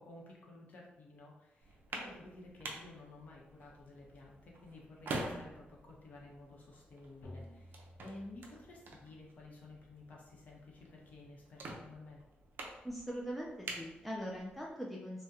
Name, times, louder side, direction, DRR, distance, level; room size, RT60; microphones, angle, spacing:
voice 1, 0.0-12.2, left 2 dB, 45° left, -2 dB, 0.7 m, -53 dB
sound 1, 1.6-14.7, right 2 dB, 65° right, 0.5 m, -48 dB
sound 2, 7.2-9.2, left 1 dB, 80° left, 0.6 m, -53 dB
voice 2, 12.8-15.2, equal, ahead, -3 dB, 0.3 m, -41 dB
2.7 x 2.1 x 3.5 m, 0.93 s
wide cardioid pair, 175°, 4 cm